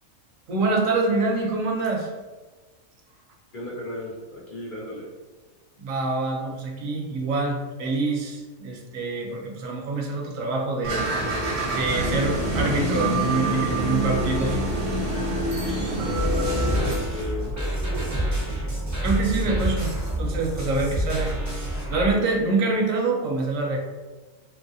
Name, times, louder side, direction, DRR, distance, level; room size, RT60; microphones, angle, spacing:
voice 1, 0.5-2.1 5.8-11.0 11.7-14.6 19.0-19.9 20.2-21.3 21.9-23.8, right 3 dB, 75° right, 0 dB, 1.0 m, -25 dB
voice 2, 3.5-5.1 16.5-18.6, equal, 50° left, -5 dB, 0.6 m, -36 dB
sound 1, 10.8-16.9, right 1 dB, 45° right, 0.7 m, -26 dB
sound 2, 16.1-22.1, right 1 dB, 20° right, 0.5 m, -27 dB
2.8 x 2.6 x 2.6 m, 1.3 s
omnidirectional pair, 1.5 m